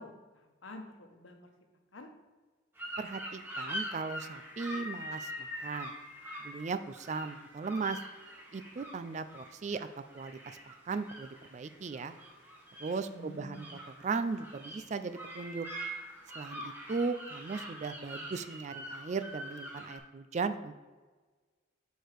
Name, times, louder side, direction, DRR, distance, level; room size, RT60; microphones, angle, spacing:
voice 1, 0.0-1.3 1.9-2.1 13.1-13.7, left 1 dB, 75° left, 4 dB, 1.1 m, -48 dB
sound 1, 2.8-20.0, equal, 10° right, 1.2 m, -44 dB
voice 2, 3.0-5.9 6.4-8.0 8.5-12.1 12.8-13.7 14.0-15.7 16.3-20.8, right 4 dB, 35° right, 11 dB, 0.3 m, -37 dB
6.8 x 4.6 x 4.6 m, 1.3 s
head